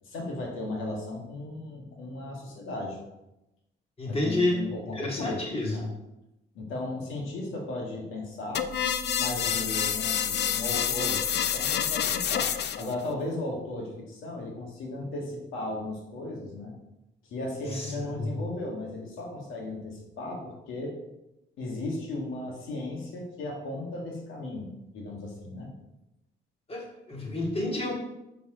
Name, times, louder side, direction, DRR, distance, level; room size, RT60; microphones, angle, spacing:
voice 1, 0.0-3.0 4.1-5.9 6.6-8.7 9.2-12.5 12.8-16.7 17.2-20.9 21.6-25.7, left 2 dB, 90° left, 0 dB, 1.7 m, -36 dB
voice 2, 4.0-4.6 4.9-5.8 17.7-17.9 18.2-18.3 26.7-27.9, left 2 dB, 30° left, -1 dB, 2.2 m, -29 dB
sound 1, 8.5-12.9, left 9 dB, 60° left, 0.6 m, -28 dB
6.9 x 6.2 x 3.8 m, 0.92 s
cardioid pair, 90°, 20 cm